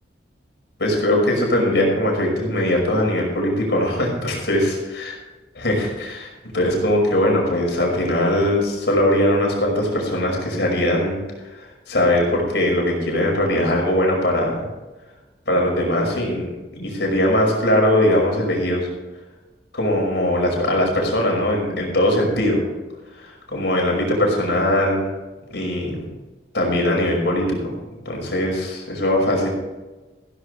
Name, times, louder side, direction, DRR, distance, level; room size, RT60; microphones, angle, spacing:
voice 1, 0.8-5.1 5.6-11.2 11.5-14.7 15.5-18.9 19.7-22.6 23.2-25.1 25.5-26.0 26.5-27.7 28.1-29.5, left 1 dB, 70° left, 0 dB, 5.7 m, -20 dB
16.0 x 15.0 x 3.3 m, 1.2 s
head